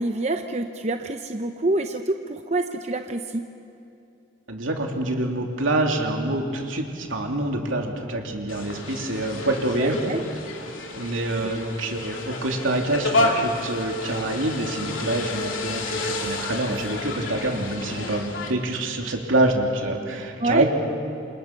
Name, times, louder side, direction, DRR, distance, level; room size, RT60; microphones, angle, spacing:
voice 1, 0.0-3.5 9.8-10.2 20.4-20.6, right 2 dB, 35° right, 6 dB, 0.8 m, -26 dB
voice 2, 4.5-10.1 10.9-20.6, right 1 dB, 80° right, 1 dB, 3.0 m, -26 dB
sound 1, 8.5-18.5, left 2 dB, 80° left, 2.8 m, -30 dB
28.0 x 27.5 x 6.0 m, 2.7 s
head